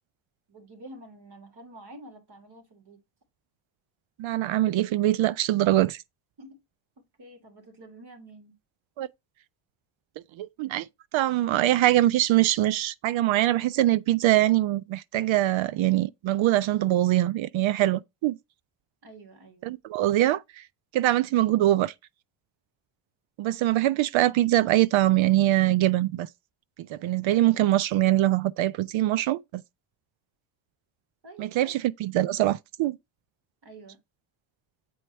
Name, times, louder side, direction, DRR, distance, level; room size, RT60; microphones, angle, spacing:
voice 1, 0.5-3.0 6.4-6.6 7.2-8.5 19.0-19.8 31.2-31.7 33.6-34.0, right 1 dB, 50° right, 3.2 m, -48 dB
voice 2, 4.2-6.0 9.0-9.1 10.4-10.9 11.1-18.4 19.6-20.6 20.9-21.9 23.4-26.3 26.9-29.6 31.4-33.0, right 14 dB, 65° right, 0.6 m, -23 dB
7.9 x 4.4 x 4.1 m
cardioid pair, 80°, 50 cm